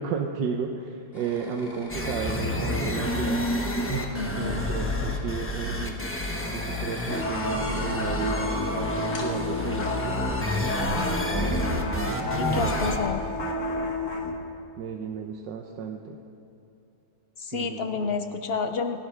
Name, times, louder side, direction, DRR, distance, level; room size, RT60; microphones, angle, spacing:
voice 1, 0.0-3.5 3.9-4.1 4.4-6.0 6.5-10.3 11.3-12.8 14.8-16.2 17.5-18.1, right 6 dB, 85° right, 3 dB, 1.5 m, -33 dB
sound 1, 1.1-11.9, left 1 dB, 30° left, 2.7 m, -47 dB
sound 2, 1.9-13.0, left 1 dB, 10° left, 1.0 m, -29 dB
voice 2, 4.1-4.7 11.7-11.9 12.4-13.2 17.4-19.0, left 5 dB, 85° left, 7 dB, 0.5 m, -30 dB
sound 3, 7.1-14.3, left 2 dB, 45° left, 1.6 m, -31 dB
29.0 x 12.0 x 3.4 m, 2.7 s
omnidirectional pair, 1.9 m